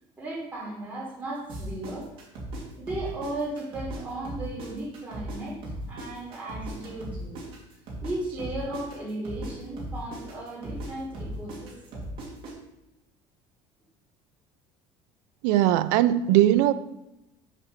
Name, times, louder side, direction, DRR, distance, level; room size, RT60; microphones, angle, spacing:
voice 1, 0.2-2.1 2.7-5.6 5.9-7.4 8.0-12.0, right 2 dB, 15° right, -7 dB, 3.7 m, -36 dB
sound 1, 1.5-8.1 8.4-12.5, right 1 dB, 40° right, 2.6 m, -37 dB
voice 2, 15.4-16.7, right 13 dB, 85° right, 12 dB, 0.5 m, -20 dB
7.6 x 5.0 x 6.5 m, 0.90 s
cardioid pair, 175°, 13 cm